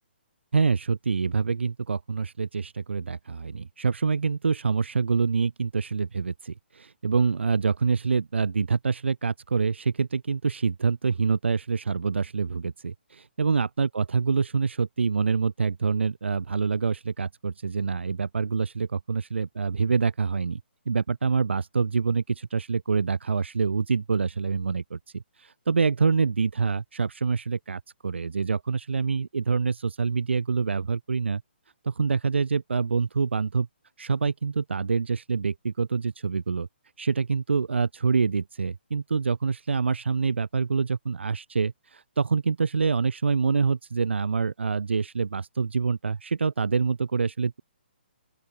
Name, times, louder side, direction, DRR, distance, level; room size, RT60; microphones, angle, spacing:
voice 1, 0.5-20.6 20.8-31.4 31.8-33.7 34.0-36.7 37.0-47.6, right 5 dB, 85° right, 5.0 m, -26 dB
open air
hypercardioid pair, 165°, 6 cm